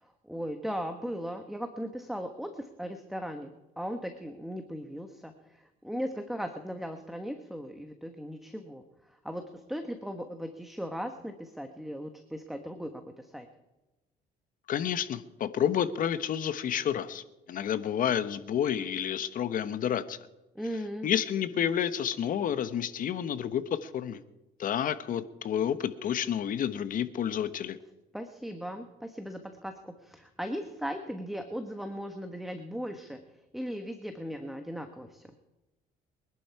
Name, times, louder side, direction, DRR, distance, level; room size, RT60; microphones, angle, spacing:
voice 1, 0.0-3.5 3.8-8.8 9.2-13.5 20.5-21.1 28.1-33.2 33.5-35.2, equal, ahead, 6 dB, 1.3 m, -38 dB
voice 2, 14.7-20.2 21.0-24.2 24.6-27.8, left 9 dB, 55° left, 13 dB, 1.1 m, -30 dB
24.0 x 11.5 x 4.8 m, 1.0 s
cardioid pair, 110°, 17 cm